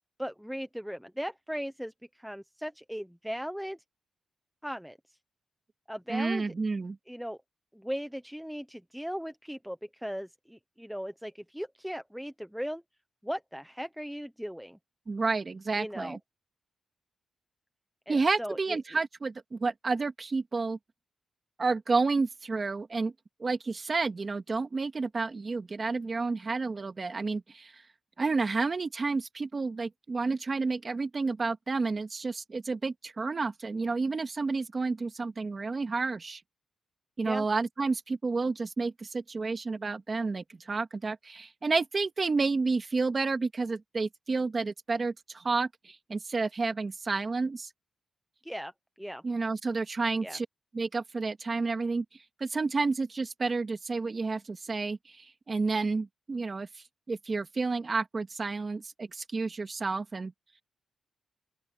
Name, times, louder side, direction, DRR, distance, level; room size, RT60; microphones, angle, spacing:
voice 1, 0.2-3.8 4.6-5.0 5.9-6.5 7.1-7.4 7.7-12.8 13.2-14.8 15.8-16.2 18.1-18.8 37.2-37.5 48.4-48.7 49.0-49.2 50.2-50.4, equal, ahead, 0.9 m, -38 dB
voice 2, 6.1-7.0 15.1-16.2 18.1-20.8 21.6-23.1 23.4-27.8 28.2-36.4 37.2-47.7 49.2-50.5 50.7-52.0 52.4-56.7 57.1-60.3, right 4 dB, 30° right, 2.2 m, -30 dB
open air
wide cardioid pair, 155°, 0 cm